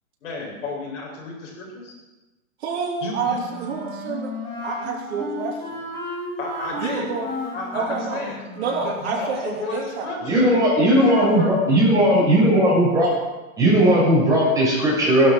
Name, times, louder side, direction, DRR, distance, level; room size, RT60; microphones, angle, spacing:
voice 1, 0.2-1.9 3.0-3.4 6.4-7.1 7.5-8.5 8.8-10.5 10.9-11.5, left 2 dB, 55° left, -1 dB, 7.9 m, -32 dB
voice 2, 2.6-4.3 4.6-5.8 6.8-7.3 7.7-8.2 8.6-10.1, right 5 dB, 50° right, -1 dB, 3.5 m, -28 dB
Wind instrument woodwind instrument, 3.3-9.0, left 1 dB, 10° left, 4.0 m, -33 dB
voice 3, 10.3-13.1 13.6-15.3, equal, 10° right, -6 dB, 6.6 m, -17 dB
18.0 x 12.0 x 6.5 m, 1.1 s
hypercardioid pair, 160°, 42 cm